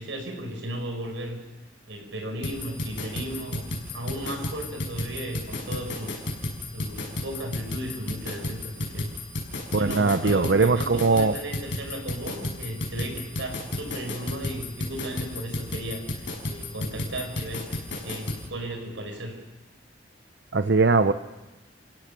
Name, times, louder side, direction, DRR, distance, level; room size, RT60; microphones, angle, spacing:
voice 1, 0.0-1.5 1.9-6.2 6.7-9.1 9.7-17.7 18.0-19.4, right 1 dB, 80° right, 4 dB, 5.4 m, -35 dB
sound 1, 2.4-18.4, left 1 dB, 75° left, 6.3 m, -33 dB
voice 2, 9.7-11.3 20.5-21.1, right 4 dB, 60° right, 10 dB, 0.7 m, -20 dB
30.0 x 16.5 x 6.8 m, 1.1 s
head